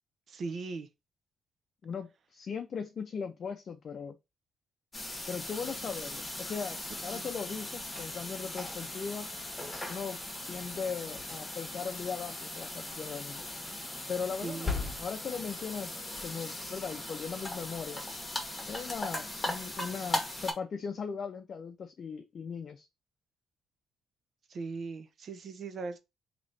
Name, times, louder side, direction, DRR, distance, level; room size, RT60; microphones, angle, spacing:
voice 1, 0.3-0.9 7.1-7.3 14.4-15.0 24.5-26.0, right 4 dB, 55° right, 0.7 m, -39 dB
voice 2, 1.8-4.2 5.3-9.3 9.9-10.2 10.5-13.4 14.1-18.0 18.7-22.9, left 6 dB, 50° left, 0.5 m, -38 dB
sound 1, 4.9-20.5, left 2 dB, 20° left, 1.4 m, -38 dB
3.1 x 2.9 x 4.0 m
cardioid pair, 90°, 0 cm